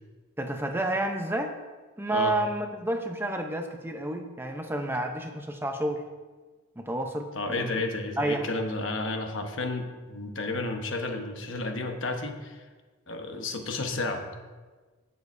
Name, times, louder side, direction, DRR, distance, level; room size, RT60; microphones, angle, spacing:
voice 1, 0.4-1.6 2.0-6.0 6.8-7.9 8.2-8.5, right 1 dB, 10° right, 4 dB, 0.7 m, -30 dB
voice 2, 7.3-12.6 13.1-14.2, left 2 dB, 65° left, 4 dB, 1.2 m, -32 dB
18.0 x 6.9 x 2.7 m, 1.4 s
head